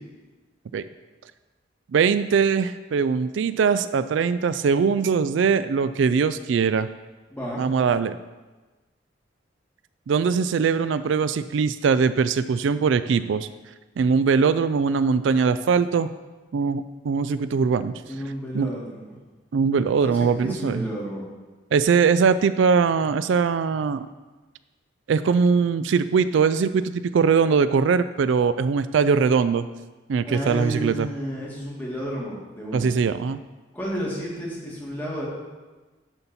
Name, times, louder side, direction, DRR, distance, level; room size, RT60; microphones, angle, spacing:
voice 1, 1.9-6.9 7.6-8.2 10.1-13.5 14.0-16.1 16.5-17.9 18.5-18.7 19.5-20.8 21.7-24.1 25.1-29.7 30.1-31.1 32.7-33.4, right 5 dB, 75° right, 13 dB, 0.3 m, -21 dB
voice 2, 7.3-7.6 18.0-19.0 19.9-21.2 30.3-32.9 33.7-35.3, equal, 10° left, -6 dB, 2.3 m, -31 dB
10.5 x 4.2 x 7.0 m, 1.2 s
head